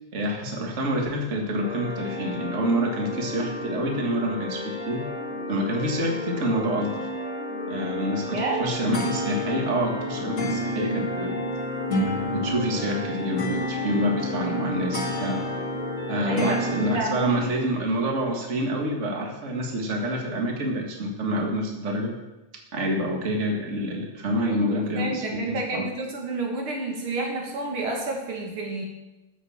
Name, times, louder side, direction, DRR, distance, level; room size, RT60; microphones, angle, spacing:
voice 1, 0.1-5.0 5.5-7.1 7.7-11.4 12.1-15.4 16.1-22.1 22.7-25.9, equal, 35° right, 0 dB, 2.1 m, -27 dB
sound 1, 1.6-17.0, left 1 dB, 35° left, 2.0 m, -30 dB
voice 2, 8.3-8.6 16.2-17.5 24.4-28.8, right 2 dB, 75° right, 0 dB, 3.0 m, -30 dB
14.5 x 6.4 x 7.3 m, 1.0 s
omnidirectional pair, 2.4 m